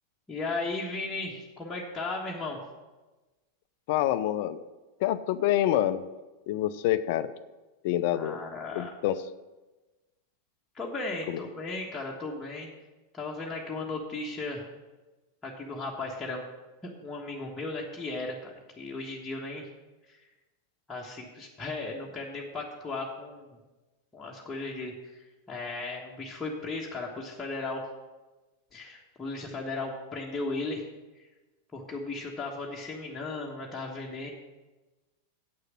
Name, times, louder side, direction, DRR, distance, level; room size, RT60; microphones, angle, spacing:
voice 1, 0.3-2.6 8.1-8.9 10.7-12.7 13.1-14.7 15.4-16.4 16.8-19.7 20.1-20.3 20.9-23.5 24.1-27.8 28.7-30.8 31.2-31.3 31.7-34.3, left 3 dB, 15° left, -3 dB, 1.4 m, -36 dB
voice 2, 3.9-4.6 5.0-6.1 6.5-7.3 7.8-8.4 8.7-9.2 11.3-11.4, left 12 dB, 50° left, 14 dB, 0.5 m, -27 dB
8.4 x 6.5 x 7.2 m, 1.1 s
figure-of-eight pair, 90°, 0 cm